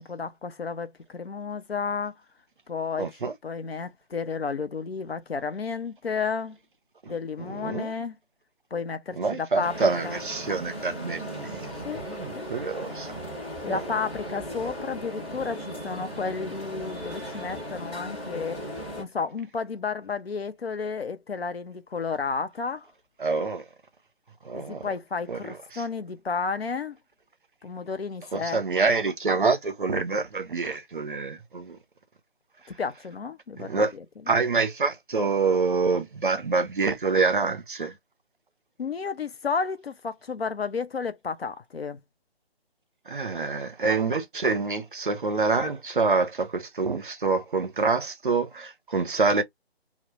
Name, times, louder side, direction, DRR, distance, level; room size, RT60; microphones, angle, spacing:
voice 1, 0.0-2.1 2.7-3.2 3.4-6.6 7.1-8.2 8.7-9.8 10.0-10.2 11.8-12.0 12.3-12.4 13.6-18.6 19.0-22.9 24.5-27.0 27.6-28.6 28.9-29.0 32.7-34.4 38.8-42.0, left 5 dB, 70° left, 0.6 m, -32 dB
voice 2, 3.0-3.3 7.0-7.9 9.2-13.2 13.7-13.8 23.2-23.6 24.4-24.9 25.3-25.8 28.3-31.8 33.6-33.9 34.3-37.9 43.1-49.4, right 4 dB, 55° right, 0.6 m, -26 dB
sound 1, 9.6-19.0, equal, 10° left, 0.7 m, -37 dB
2.3 x 2.0 x 2.9 m
figure-of-eight pair, 150°, 32 cm